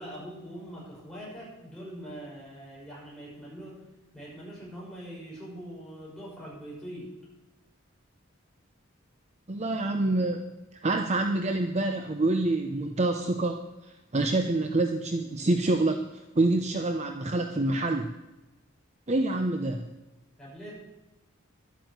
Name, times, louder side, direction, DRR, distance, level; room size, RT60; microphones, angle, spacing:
voice 1, 0.0-3.8 4.1-7.1 20.4-20.7, equal, 5° left, -6 dB, 6.1 m, -42 dB
voice 2, 9.5-10.4 10.8-13.6 14.1-18.1 19.1-19.9, right 2 dB, 30° right, 5 dB, 0.7 m, -26 dB
11.5 x 9.1 x 8.0 m, 1.0 s
head